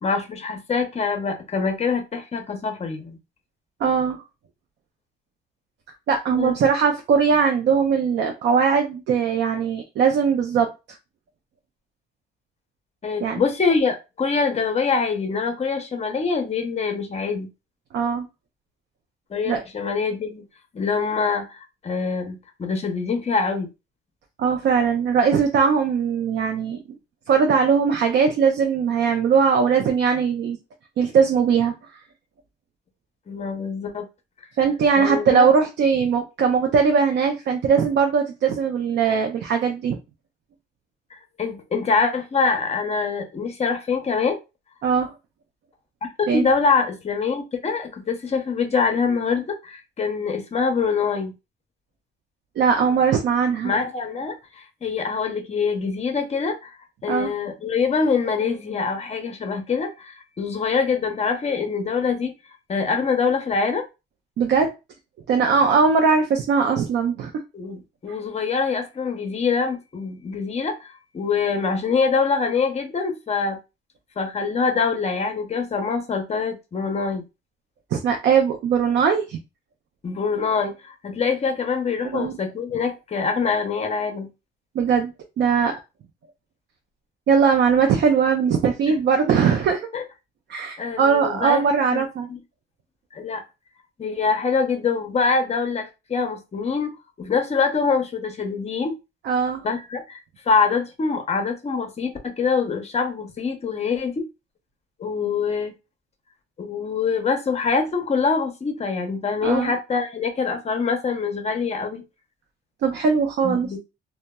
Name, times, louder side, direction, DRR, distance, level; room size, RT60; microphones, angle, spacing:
voice 1, 0.0-3.2 6.3-6.5 13.0-17.5 19.3-20.4 20.7-23.7 33.3-34.1 35.0-35.5 41.1-44.4 46.0-51.3 53.6-62.3 62.7-63.8 67.5-73.6 74.2-77.2 80.0-84.3 89.9-90.0 90.8-91.6 91.9-92.0 92.3-92.4 93.1-93.4 94.0-96.9 97.2-99.0 99.6-100.2 100.5-104.3 105.0-105.7 106.6-112.0 113.4-113.8, left 5 dB, 30° left, 6 dB, 0.6 m, -24 dB
voice 2, 3.8-4.2 6.1-10.7 13.2-13.4 17.9-18.3 19.5-19.6 24.4-26.8 27.3-30.6 31.0-31.7 34.6-40.0 44.8-45.1 46.3-46.5 52.6-53.7 57.1-57.3 64.4-64.7 65.3-67.3 77.9-79.4 82.0-82.4 84.7-85.1 85.4-85.8 87.3-89.9 90.5-92.3 99.2-99.6 109.4-109.7 112.8-113.7, right 6 dB, 60° right, 4 dB, 0.4 m, -20 dB
2.8 x 2.1 x 2.2 m, 0.27 s
cardioid pair, 90°, 20 cm